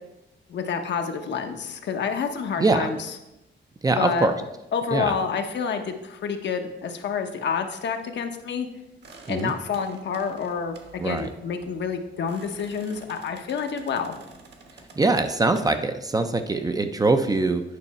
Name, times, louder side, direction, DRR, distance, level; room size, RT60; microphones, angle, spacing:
voice 1, 0.5-3.0 3.9-4.3 4.7-8.7 9.3-14.1, left 6 dB, 65° left, 5 dB, 0.9 m, -28 dB
voice 2, 2.6-2.9 3.8-4.3 4.9-5.1 9.3-9.5 11.0-11.3 15.0-17.6, right 3 dB, 20° right, 8 dB, 0.4 m, -22 dB
sound 1, 9.0-15.8, right 3 dB, 60° right, 1.2 m, -49 dB
9.5 x 5.5 x 4.2 m, 0.95 s
wide cardioid pair, 160°, 19 cm